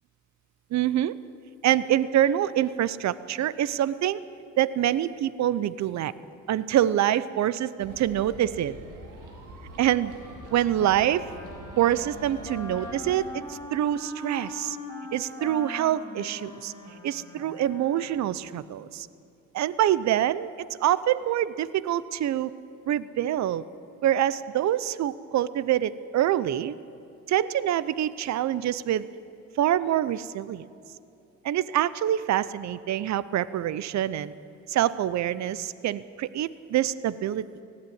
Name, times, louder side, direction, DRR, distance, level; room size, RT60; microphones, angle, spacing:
voice 1, 0.7-1.1 1.6-4.2 4.6-6.1 6.5-8.7 9.8-10.1 10.5-11.3 11.8-14.8 15.1-16.7 17.0-19.1 19.5-20.5 20.8-22.5 22.9-23.6 24.0-26.7 27.3-29.1 29.6-30.6 31.4-34.3 34.7-37.4, right 12 dB, 65° right, 17 dB, 0.7 m, -25 dB
sound 1, 7.8-13.3, right 1 dB, 90° right, 3.8 m, -45 dB
Wind instrument woodwind instrument, 10.4-18.5, left 1 dB, 10° left, 3.7 m, -41 dB
19.0 x 15.5 x 9.4 m, 2.8 s
cardioid pair, 90°, 30 cm